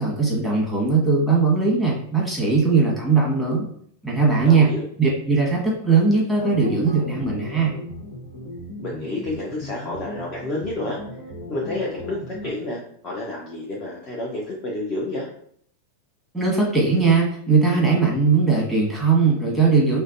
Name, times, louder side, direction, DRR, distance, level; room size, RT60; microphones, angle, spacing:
voice 1, 0.0-3.7 4.0-4.7 5.0-7.7 16.3-20.0, right 4 dB, ahead, -4 dB, 1.4 m, -19 dB
voice 2, 4.4-4.9 8.8-11.0 11.5-15.3, left 2 dB, 35° left, -4 dB, 0.8 m, -30 dB
sound 1, 6.4-12.5, left 1 dB, 60° left, 1.3 m, -37 dB
4.9 x 2.2 x 2.6 m, 0.63 s
figure-of-eight pair, 90°, 0 cm